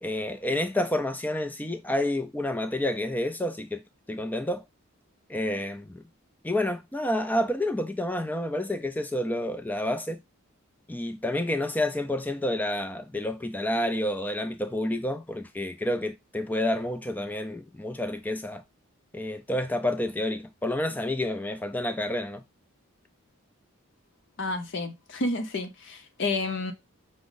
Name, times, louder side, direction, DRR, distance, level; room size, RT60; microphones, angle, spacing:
voice 1, 0.0-3.8 4.1-4.6 5.3-6.0 6.4-10.2 10.9-18.6 19.1-22.4, left 1 dB, 10° left, 0.4 m, -29 dB
voice 2, 24.4-26.7, left 2 dB, 55° left, 0.7 m, -30 dB
6.0 x 2.1 x 3.9 m
head